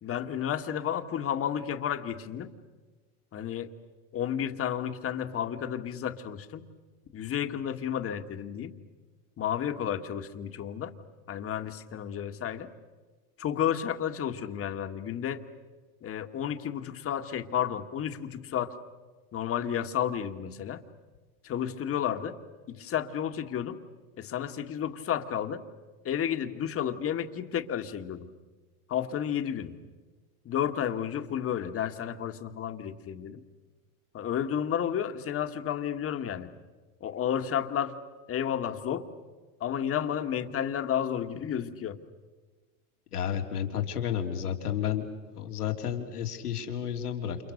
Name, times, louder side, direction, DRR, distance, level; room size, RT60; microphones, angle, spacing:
voice 1, 0.0-2.5 3.3-3.7 4.1-6.7 7.1-8.7 9.4-10.9 11.3-12.7 13.4-15.4 16.0-18.7 19.3-20.8 21.4-22.4 22.7-23.8 24.2-25.6 26.0-28.3 28.9-29.8 30.5-33.4 34.1-36.5 37.0-37.9 38.3-39.0 39.6-42.0, left 9 dB, 30° left, 7 dB, 1.9 m, -31 dB
voice 2, 43.1-45.0 45.4-47.5, left 9 dB, 90° left, 3 dB, 3.3 m, -31 dB
30.0 x 28.5 x 6.6 m, 1.3 s
hypercardioid pair, 105°, 44 cm